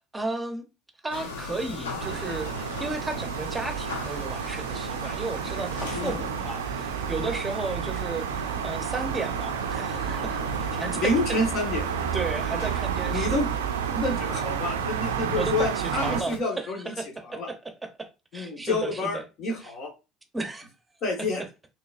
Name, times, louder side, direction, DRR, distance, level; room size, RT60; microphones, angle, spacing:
voice 1, 0.1-0.7 1.0-11.4 12.1-13.4 15.4-19.2 19.6-19.7 20.3-20.7, right 3 dB, 15° right, 0.8 m, -34 dB
sound 1, 1.1-16.4, left 4 dB, 90° left, 0.7 m, -39 dB
sound 2, 2.0-16.2, right 9 dB, 90° right, 0.3 m, -31 dB
voice 2, 10.9-11.8 13.1-13.5 13.9-16.9 17.3-17.5 18.3-19.9 21.0-21.4, left 2 dB, 60° left, 1.2 m, -28 dB
3.8 x 2.8 x 2.5 m
hypercardioid pair, 70°, 0 cm